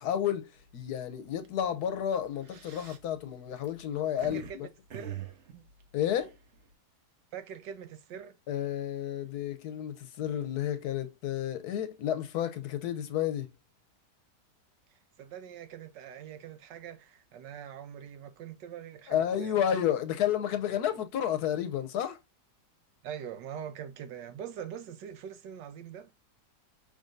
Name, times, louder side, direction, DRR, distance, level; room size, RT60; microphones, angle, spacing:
voice 1, 0.0-4.7 5.9-6.3 8.5-13.5 19.1-22.2, left 10 dB, 70° left, 1.1 m, -31 dB
sound 1, 0.6-0.9 1.3-1.5 2.2-4.5 4.9-6.7, right 9 dB, 50° right, 0.9 m, -44 dB
voice 2, 4.2-5.2 7.3-8.4 14.9-19.6 23.0-26.1, right 8 dB, 85° right, 1.4 m, -43 dB
5.7 x 3.7 x 2.5 m
omnidirectional pair, 1.8 m